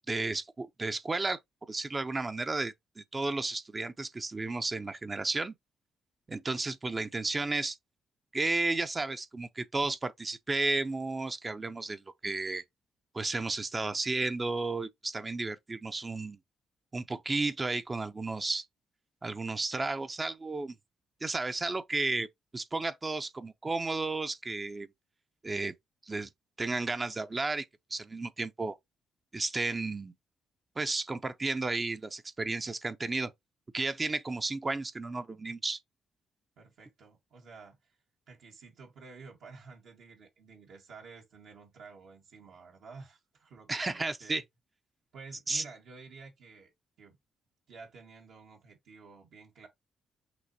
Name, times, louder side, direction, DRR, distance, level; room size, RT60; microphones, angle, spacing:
voice 1, 0.1-1.4 1.7-5.5 6.3-7.8 8.3-12.6 13.1-16.4 16.9-18.7 19.2-20.8 21.2-22.3 22.5-24.9 25.4-25.7 26.0-26.3 26.6-27.7 27.9-28.8 29.3-30.1 30.8-33.3 33.7-35.8 43.7-44.4 45.5-45.6, right 3 dB, 30° right, 0.6 m, -33 dB
voice 2, 36.6-38.0 38.3-44.4 45.1-46.7 47.0-47.2 47.7-49.7, right 4 dB, 75° right, 1.5 m, -51 dB
6.0 x 2.9 x 2.7 m
supercardioid pair, 70°, 0 cm